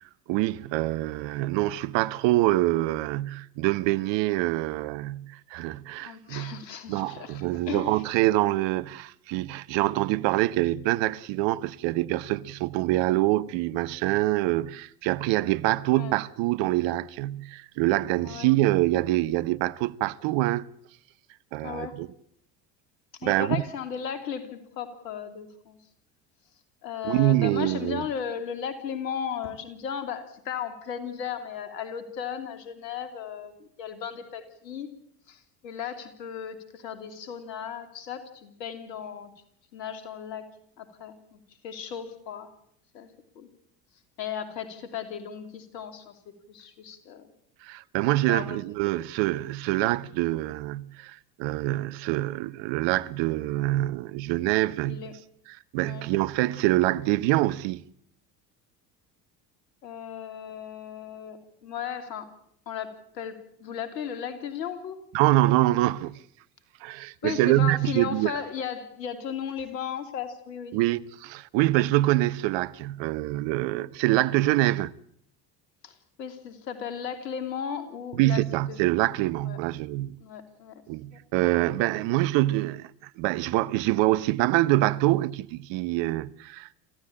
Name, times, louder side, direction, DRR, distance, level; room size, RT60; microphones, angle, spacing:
voice 1, 0.3-6.6 6.9-20.7 21.5-22.1 23.2-23.6 27.0-28.0 47.6-55.0 55.7-57.8 65.1-66.2 66.8-68.3 70.7-74.9 78.2-80.2 80.9-86.8, right 17 dB, 60° right, 1.1 m, -25 dB
voice 2, 6.0-8.0 15.9-16.2 18.2-18.5 21.6-22.0 23.1-25.8 26.8-34.9 35.3-39.3 39.7-40.5 40.8-42.5 42.9-43.1 43.3-43.5 44.2-47.3 48.3-48.6 54.8-55.1 55.8-56.0 59.8-62.3 62.7-65.0 67.2-70.8 75.8-78.4 78.7-79.0 79.5-79.6 80.2-80.8, left 8 dB, 80° left, 3.1 m, -36 dB
27.0 x 15.5 x 8.7 m
hypercardioid pair, 70°, 49 cm